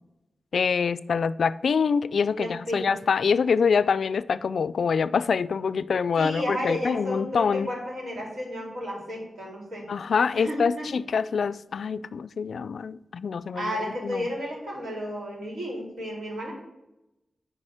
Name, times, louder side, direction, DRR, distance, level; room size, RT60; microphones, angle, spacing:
voice 1, 0.5-7.7 9.9-13.8 14.0-14.3, left 6 dB, 80° left, 0.3 m, -25 dB
voice 2, 2.3-2.9 6.2-9.9 10.3-10.9 13.5-16.5, equal, 80° right, 4.1 m, -32 dB
9.8 x 4.9 x 6.5 m
wide cardioid pair, 130°, 0 cm